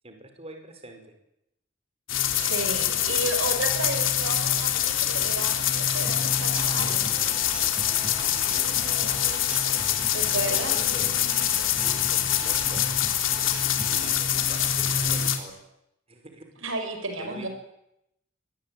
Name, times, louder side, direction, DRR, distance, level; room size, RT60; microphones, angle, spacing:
voice 1, 0.0-1.1 3.1-3.2 8.1-9.4 10.1-11.2 11.8-12.8 13.6-15.6 16.1-16.4 17.2-17.5, right 2 dB, 30° right, 5 dB, 5.2 m, -45 dB
sound 1, 2.1-15.4, left 10 dB, 75° left, 3.4 m, -25 dB
voice 2, 2.3-7.0 10.1-10.7 16.6-17.5, right 2 dB, 90° right, 6 dB, 5.8 m, -32 dB
Human voice / Acoustic guitar / Drum, 6.1-14.0, right 1 dB, 5° right, 4.7 m, -41 dB
25.5 x 20.5 x 9.2 m, 0.80 s
head